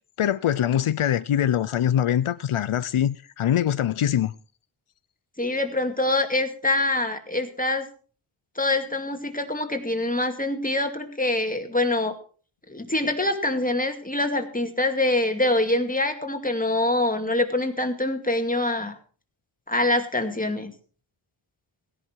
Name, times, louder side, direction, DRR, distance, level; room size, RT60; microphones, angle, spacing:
voice 1, 0.2-4.3, left 10 dB, 85° left, 0.6 m, -23 dB
voice 2, 5.4-7.9 8.6-12.2 12.7-19.0 19.7-20.7, left 2 dB, 15° left, 2.3 m, -25 dB
17.0 x 11.0 x 4.6 m
wide cardioid pair, 70°, 48 cm